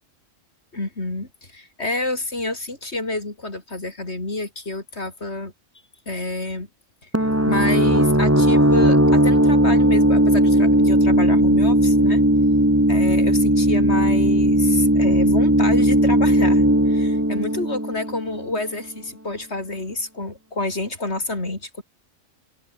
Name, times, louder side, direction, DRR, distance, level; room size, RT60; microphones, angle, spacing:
voice 1, 0.7-5.5 6.1-6.7 7.0-12.2 12.9-21.8, left 2 dB, 60° left, 4.6 m, -29 dB
sound 1, 7.1-18.7, right 1 dB, 10° right, 3.4 m, -17 dB
open air
omnidirectional pair, 1.3 m